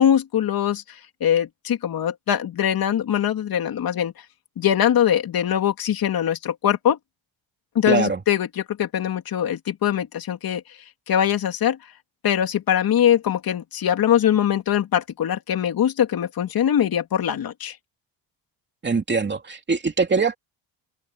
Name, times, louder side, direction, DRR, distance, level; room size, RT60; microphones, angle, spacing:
voice 1, 0.0-4.1 4.6-7.0 7.7-10.6 11.1-11.8 12.2-17.8, left 10 dB, 50° left, 2.8 m, -22 dB
voice 2, 7.9-8.2 18.8-20.4, right 4 dB, 25° right, 2.8 m, -22 dB
cardioid pair, 120°, 45 cm